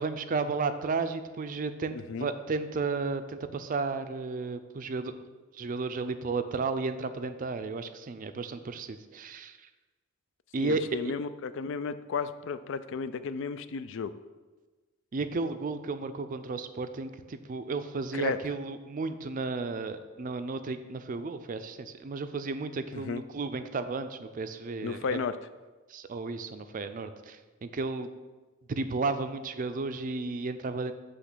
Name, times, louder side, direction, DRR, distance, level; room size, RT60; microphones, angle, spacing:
voice 1, 0.0-5.1 5.5-9.6 10.5-11.1 15.1-25.2 25.9-28.1 28.7-30.9, right 4 dB, 40° right, 10 dB, 0.4 m, -33 dB
voice 2, 1.9-2.3 10.6-14.1 18.1-18.4 22.9-23.2 24.8-25.4, left 5 dB, 60° left, 13 dB, 0.4 m, -33 dB
8.1 x 3.2 x 6.1 m, 1.3 s
head